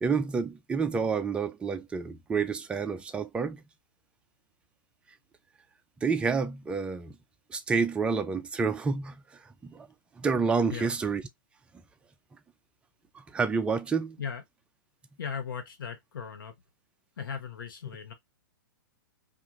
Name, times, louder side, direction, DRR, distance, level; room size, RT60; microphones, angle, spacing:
voice 1, 0.0-3.6 6.0-7.2 7.5-9.9 10.2-11.2 13.1-14.2, right 5 dB, 10° right, 0.3 m, -29 dB
voice 2, 15.2-16.5 17.2-18.1, left 6 dB, 75° left, 0.9 m, -37 dB
2.4 x 2.4 x 2.9 m
hypercardioid pair, 130°, 11 cm